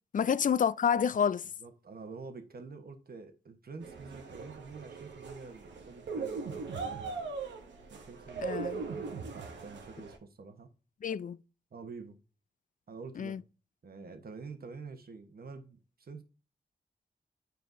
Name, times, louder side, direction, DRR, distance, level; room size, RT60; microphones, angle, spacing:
voice 1, 0.1-1.5 8.4-8.8 11.0-11.4 13.2-13.4, left 7 dB, 50° left, 0.4 m, -28 dB
voice 2, 1.6-7.3 7.9-10.7 11.7-12.2 12.9-13.4 13.8-16.2, right 4 dB, 60° right, 1.1 m, -48 dB
sound 1, 3.8-10.2, right 4 dB, 90° right, 0.9 m, -40 dB
9.4 x 4.6 x 2.7 m
cardioid pair, 45°, 18 cm